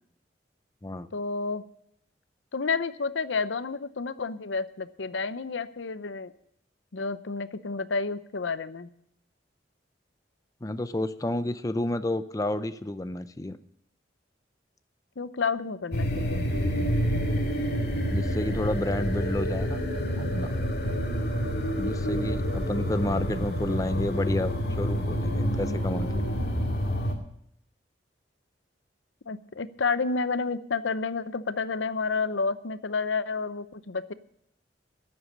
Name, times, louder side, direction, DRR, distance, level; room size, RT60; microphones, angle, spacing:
voice 1, 1.1-1.6 2.5-6.3 6.9-8.9 15.2-16.5 29.3-34.1, left 4 dB, 85° left, 13 dB, 0.7 m, -30 dB
voice 2, 10.6-13.6 18.1-19.8 20.2-20.5 21.8-26.2, left 1 dB, 20° left, 11 dB, 0.5 m, -30 dB
sound 1, 15.9-27.2, equal, 55° left, 2.2 m, -28 dB
12.0 x 7.9 x 8.6 m, 0.74 s
head